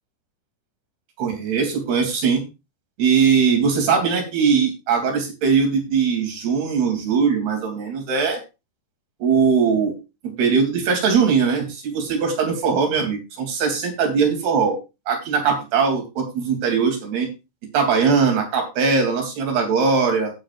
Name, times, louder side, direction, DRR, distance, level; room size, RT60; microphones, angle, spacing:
voice 1, 1.2-2.4 3.0-8.4 9.2-10.0 10.2-14.8 15.1-17.3 17.7-20.3, right 5 dB, 75° right, 3 dB, 5.0 m, -20 dB
16.0 x 8.1 x 2.5 m, 0.27 s
omnidirectional pair, 4.6 m